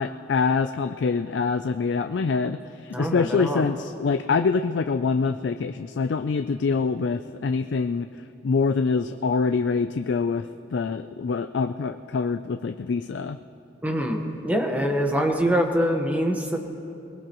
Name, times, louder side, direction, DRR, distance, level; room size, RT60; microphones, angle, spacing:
voice 1, 0.0-8.1 8.4-10.5 10.7-13.4, left 4 dB, 65° left, 8 dB, 0.4 m, -25 dB
voice 2, 2.9-3.6 13.8-16.6, equal, 10° right, 3 dB, 1.2 m, -24 dB
22.5 x 20.5 x 3.0 m, 2.8 s
head